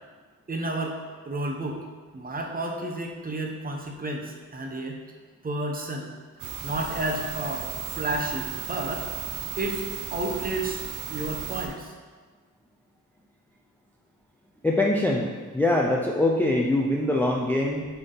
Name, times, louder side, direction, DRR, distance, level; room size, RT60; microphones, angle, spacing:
voice 1, 0.5-1.0 1.2-1.8 2.1-5.0 5.4-6.1 6.4-9.1 9.6-9.8 10.1-10.8 11.1-11.9, right 1 dB, 25° right, 1 dB, 0.8 m, -31 dB
sound 1, 6.4-11.7, right 8 dB, 70° right, 0.8 m, -35 dB
voice 2, 14.6-17.9, left 1 dB, 5° left, -1 dB, 0.4 m, -23 dB
9.8 x 3.5 x 3.8 m, 1.4 s
wide cardioid pair, 150°, 32 cm